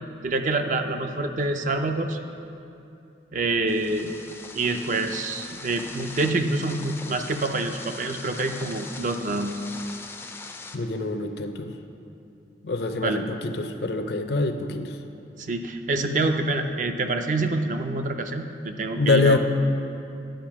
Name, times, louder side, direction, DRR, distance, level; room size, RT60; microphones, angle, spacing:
voice 1, 0.2-2.2 3.3-4.1 4.5-9.6 13.0-13.2 15.4-19.4, right 2 dB, 45° right, 6 dB, 0.5 m, -26 dB
sound 1, 3.7-10.8, left 3 dB, 15° left, 0.4 m, -41 dB
voice 2, 10.7-11.7 12.6-15.0 19.0-19.4, left 3 dB, 65° left, 7 dB, 0.6 m, -25 dB
10.0 x 5.6 x 6.0 m, 2.7 s
head